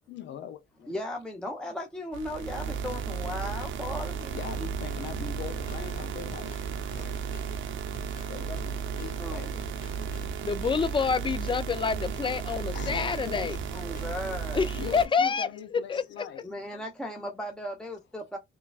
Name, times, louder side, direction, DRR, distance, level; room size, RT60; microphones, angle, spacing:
voice 1, 0.1-0.9 4.3-6.6 6.9-7.3 8.3-9.7 12.7-13.6 14.7-16.4, left 9 dB, 65° left, 0.6 m, -41 dB
voice 2, 0.9-4.7 9.2-9.5 13.7-14.7 16.4-18.4, left 1 dB, 5° left, 0.8 m, -37 dB
sound 1, 2.1-15.1, right 6 dB, 75° right, 0.8 m, -34 dB
Drum kit, 5.3-14.0, equal, 45° left, 1.5 m, -47 dB
voice 3, 10.4-13.6 14.5-16.0, left 5 dB, 25° left, 0.5 m, -27 dB
5.4 x 2.3 x 2.4 m
cardioid pair, 90°, 20 cm